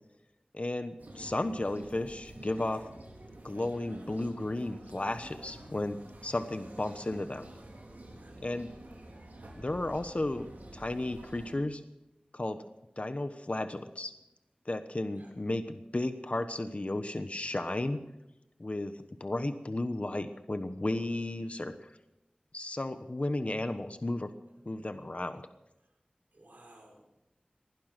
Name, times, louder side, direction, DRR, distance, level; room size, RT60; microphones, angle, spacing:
voice 1, 0.5-2.8 3.4-7.5 8.4-8.7 9.6-11.8 12.3-12.6 13.0-14.1 14.7-18.0 18.6-21.9 22.5-24.3 24.6-25.4, left 2 dB, 45° left, 9 dB, 1.1 m, -34 dB
sound 1, 1.0-11.5, right 1 dB, 90° right, 4.2 m, -49 dB
voice 2, 7.9-8.5 15.2-15.3 26.3-27.0, right 1 dB, 75° right, -1 dB, 5.9 m, -57 dB
20.0 x 11.5 x 6.1 m, 0.91 s
wide cardioid pair, 50°, 3 cm